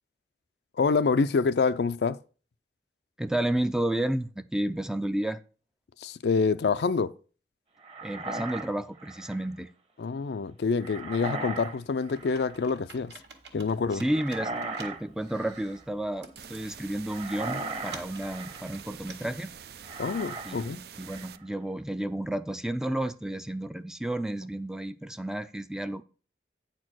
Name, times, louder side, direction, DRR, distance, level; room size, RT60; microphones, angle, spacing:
voice 1, 0.8-2.2 6.0-7.1 10.0-13.1 13.5-14.0 20.0-20.8, left 4 dB, 75° left, 0.4 m, -26 dB
voice 2, 3.2-5.4 8.0-9.7 13.9-14.5 14.8-19.5 20.4-26.0, right 1 dB, 5° right, 0.3 m, -31 dB
sound 1, 7.8-9.5 10.8-11.8 12.0-12.6 14.0-15.0 15.3-15.8 17.0-18.7 19.8-20.7 21.0-21.4, right 3 dB, 35° right, 1.1 m, -38 dB
Computer keyboard, 12.1-19.1, right 4 dB, 85° right, 1.7 m, -50 dB
sound 2, 16.4-21.4, right 8 dB, 65° right, 0.5 m, -46 dB
9.2 x 4.4 x 6.1 m
head